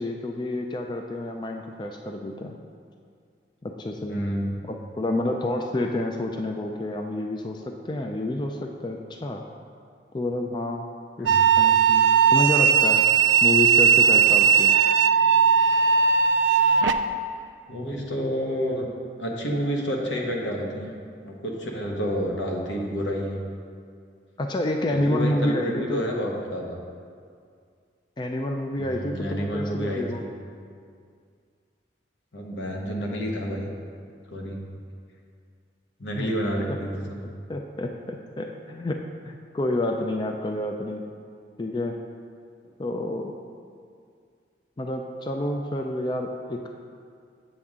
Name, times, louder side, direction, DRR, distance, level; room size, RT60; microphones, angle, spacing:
voice 1, 0.0-2.6 3.6-4.2 4.6-9.4 10.1-10.9 11.2-13.0 13.4-14.8 24.4-26.0 28.2-30.2 36.2-36.3 36.7-36.8 37.5-41.0 41.6-42.0 42.8-43.3 44.8-46.7, left 1 dB, 25° left, 3 dB, 0.3 m, -29 dB
voice 2, 4.1-4.6 11.2-11.4 17.7-18.9 19.2-20.9 21.2-23.4 24.9-26.8 28.8-30.2 32.3-33.7 34.3-34.6 36.0-37.2, equal, 85° left, -1 dB, 1.1 m, -29 dB
sound 1, 11.3-16.9, right 7 dB, 85° right, 0.3 m, -18 dB
7.7 x 7.0 x 3.6 m, 2.2 s
head